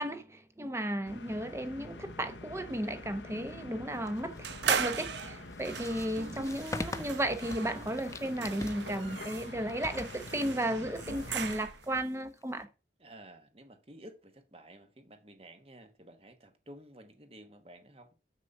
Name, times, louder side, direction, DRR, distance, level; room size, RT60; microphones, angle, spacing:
voice 1, 0.0-12.7, right 1 dB, 15° right, 0.8 m, -34 dB
sound 1, 1.0-11.6, left 3 dB, 80° left, 0.8 m, -47 dB
sound 2, 4.0-12.6, left 2 dB, 15° left, 0.4 m, -45 dB
sound 3, 4.4-12.0, right 7 dB, 75° right, 0.7 m, -38 dB
voice 2, 13.0-18.1, right 1 dB, 30° right, 1.1 m, -53 dB
6.8 x 6.2 x 5.3 m
head